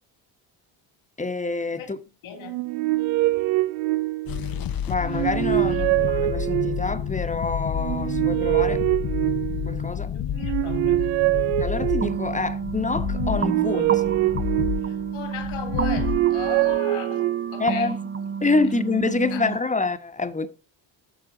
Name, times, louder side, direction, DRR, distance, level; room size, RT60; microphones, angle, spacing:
voice 1, 1.2-2.0 4.9-8.8 9.7-10.1 11.6-14.0 17.6-18.0 18.4-20.5, left 3 dB, 15° left, 1.1 m, -26 dB
voice 2, 2.2-2.7 5.8-5.9 10.1-11.1 14.8-18.3 19.3-19.5, left 8 dB, 75° left, 2.9 m, -38 dB
sound 1, 2.4-4.5 5.0-7.0 7.7-9.9 10.3-12.4 13.1-15.2 15.7-17.7, right 18 dB, 85° right, 0.6 m, -24 dB
sound 2, 4.3-16.8, left 9 dB, 45° left, 0.7 m, -30 dB
sound 3, 12.0-19.6, right 6 dB, 25° right, 0.7 m, -31 dB
10.5 x 6.6 x 3.9 m
supercardioid pair, 70°, 48 cm